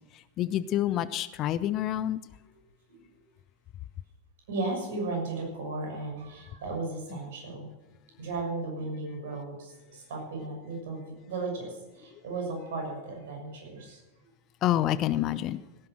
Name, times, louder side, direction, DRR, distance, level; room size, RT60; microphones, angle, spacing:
voice 1, 0.4-2.2 14.6-15.6, left 12 dB, 35° left, 16 dB, 0.6 m, -27 dB
voice 2, 4.5-7.7 8.2-14.0, right 3 dB, 55° right, 1 dB, 6.6 m, -35 dB
17.0 x 10.5 x 6.3 m, 1.1 s
figure-of-eight pair, 90°, 0 cm